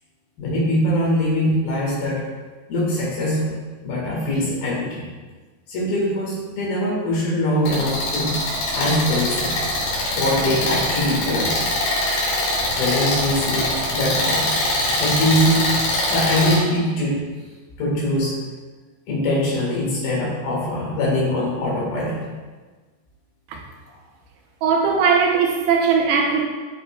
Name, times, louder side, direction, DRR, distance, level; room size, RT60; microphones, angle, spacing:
voice 1, 0.4-2.2 2.7-3.6 3.8-5.0 5.7-8.4 8.7-9.6 10.1-11.5 12.8-14.5 15.0-15.7 16.1-17.2 17.8-18.4 19.1-22.2, left 1 dB, 65° left, -5 dB, 3.2 m, -22 dB
sound 1, 7.7-16.6, left 2 dB, 80° left, 3.9 m, -23 dB
voice 2, 24.6-26.4, right 5 dB, 80° right, 2 dB, 2.8 m, -19 dB
8.4 x 5.7 x 2.2 m, 1.4 s
omnidirectional pair, 4.9 m